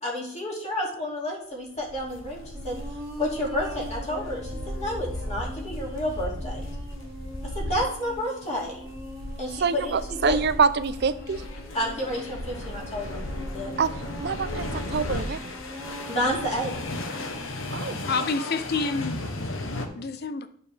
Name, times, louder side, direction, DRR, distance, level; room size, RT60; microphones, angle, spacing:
voice 1, 0.0-2.8 3.2-6.6 7.4-8.9 9.4-10.4 11.7-13.2 13.5-13.7 16.1-16.8, equal, 35° left, -3 dB, 2.5 m, -30 dB
sound 1, 1.8-19.9, left 1 dB, 80° left, 1.1 m, -35 dB
sound 2, 2.5-17.3, equal, 15° right, 1.7 m, -42 dB
voice 2, 9.6-11.4 13.8-13.9 14.2-15.4 17.7-18.0, right 5 dB, 55° right, 13 dB, 0.5 m, -25 dB
voice 3, 17.5-19.2 20.0-20.5, left 4 dB, 55° left, 10 dB, 0.6 m, -29 dB
9.8 x 6.7 x 3.4 m, 0.63 s
head